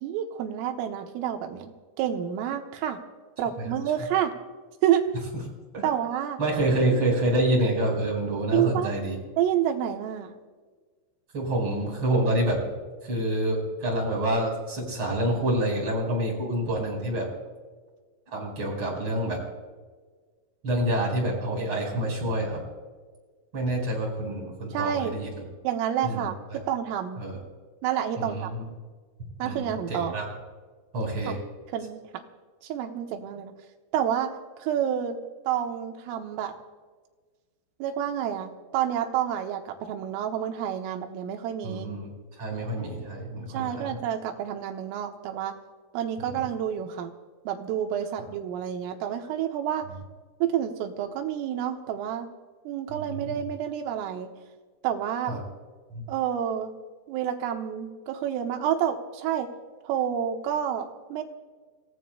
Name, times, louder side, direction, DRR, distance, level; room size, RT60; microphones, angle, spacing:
voice 1, 0.0-1.7 2.0-3.0 3.4-4.3 4.8-5.0 5.8-6.4 8.5-8.9 9.4-10.4 24.7-25.2 25.6-27.2 27.8-28.5 29.4-30.2 31.3-31.4 31.7-32.2 32.6-33.5 33.9-34.3 34.6-35.2 35.5-36.5 37.8-41.9 43.5-45.5 45.9-47.1 47.5-49.9 50.4-52.3 52.7-54.3 54.8-55.4 56.1-56.7 57.1-59.5 59.9-61.2, right 10 dB, 80° right, 4 dB, 3.6 m, -29 dB
voice 2, 6.4-9.2 11.3-12.6 13.0-17.3 18.3-19.4 20.6-22.6 23.5-25.4 26.0-26.6 27.2-27.4 28.2-28.6 29.4-30.2 30.9-31.4 41.6-42.1 42.4-44.0 46.2-46.3 52.9-53.4 55.3-55.4 55.9-56.0, right 1 dB, 25° right, -2 dB, 4.9 m, -27 dB
28.0 x 16.5 x 2.2 m, 1.4 s
omnidirectional pair, 5.9 m